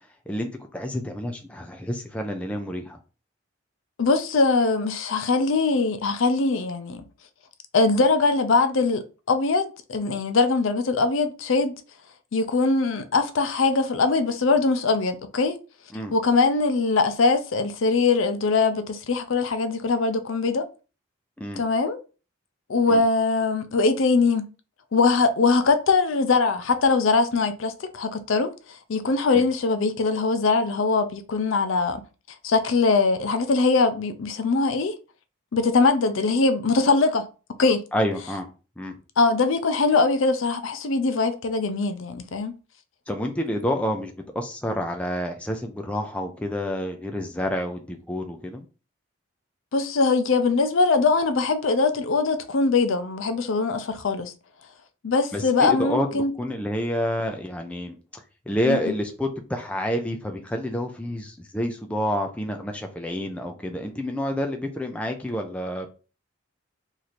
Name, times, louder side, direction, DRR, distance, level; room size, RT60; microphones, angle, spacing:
voice 1, 0.3-3.0 15.9-16.1 21.4-21.6 22.9-23.0 29.3-29.5 37.9-38.5 38.8-38.9 43.1-48.6 55.3-65.9, equal, 5° left, 0.4 m, -29 dB
voice 2, 4.0-7.0 7.7-11.8 12.3-15.6 16.1-20.6 21.6-22.0 22.7-24.5 24.9-28.5 28.9-32.0 32.4-34.9 35.5-37.3 37.6-37.8 39.2-42.5 49.7-54.3 55.0-56.3 58.7-58.9, left 3 dB, 70° left, 0.5 m, -22 dB
3.1 x 2.6 x 4.1 m
head